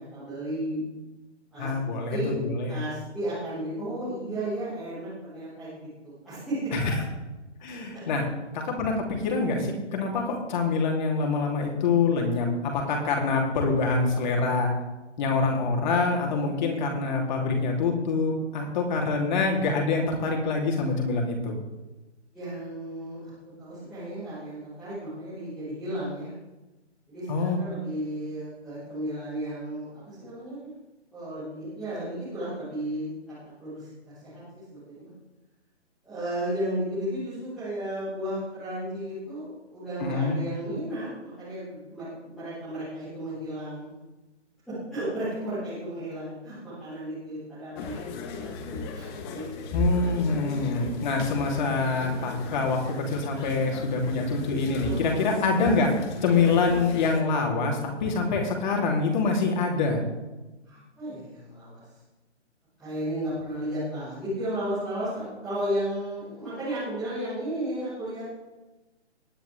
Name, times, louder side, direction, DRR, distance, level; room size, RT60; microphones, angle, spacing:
voice 1, 0.1-0.8 1.5-1.7 2.1-2.3 2.7-6.7 7.9-8.0 22.3-23.3 23.6-26.3 27.1-30.7 31.1-34.4 34.7-35.1 36.0-44.0 44.9-49.7 54.8-55.4 60.6-61.8 62.8-68.4, right 1 dB, ahead, -18 dB, 0.3 m, -34 dB
voice 2, 1.6-2.8 6.7-7.0 7.6-8.2 8.5-12.5 12.7-14.7 15.2-21.5 27.3-27.6 40.0-40.4 49.7-55.9 56.2-60.0, left 4 dB, 40° left, 0 dB, 3.1 m, -25 dB
sound 1, 47.8-57.2, left 1 dB, 20° left, 1.1 m, -35 dB
18.5 x 9.5 x 3.4 m, 1.1 s
figure-of-eight pair, 140°, 35 cm